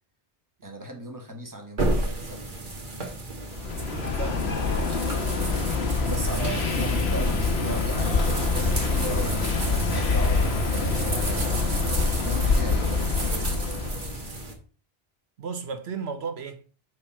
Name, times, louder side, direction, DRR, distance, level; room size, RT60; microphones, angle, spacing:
voice 1, 0.6-2.4 6.0-11.1 11.5-11.7 12.2-13.7, right 1 dB, 20° right, 1.2 m, -38 dB
sound 1, 1.8-14.5, right 2 dB, 50° right, 1.6 m, -33 dB
sound 2, 3.5-14.3, left 4 dB, 80° left, 1.4 m, -26 dB
voice 2, 3.9-4.5 6.3-6.7 7.1-7.3 15.4-16.6, right 5 dB, 85° right, 1.2 m, -34 dB
Engine, 6.2-11.4, right 2 dB, 30° left, 1.3 m, -34 dB
6.6 x 4.4 x 5.5 m
omnidirectional pair, 1.1 m